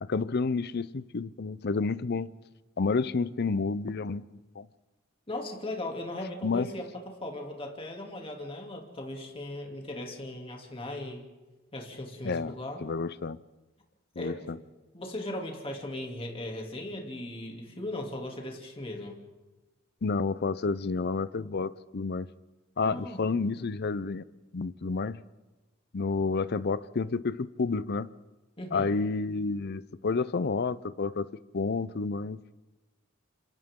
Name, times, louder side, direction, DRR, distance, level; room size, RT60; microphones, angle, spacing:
voice 1, 0.0-2.3 2.8-4.7 6.4-6.7 12.2-12.5 12.8-13.4 14.2-14.6 20.0-22.3 22.8-24.2 24.5-25.2 25.9-28.1 28.7-31.3 31.5-32.5, left 4 dB, 55° left, 16 dB, 0.6 m, -30 dB
voice 2, 5.3-6.9 7.2-11.2 11.7-12.8 14.2-14.5 14.9-19.2 22.8-23.2 23.6-23.7 28.6-28.9, left 1 dB, 30° left, 1 dB, 2.8 m, -38 dB
28.5 x 26.0 x 3.8 m, 1.2 s
head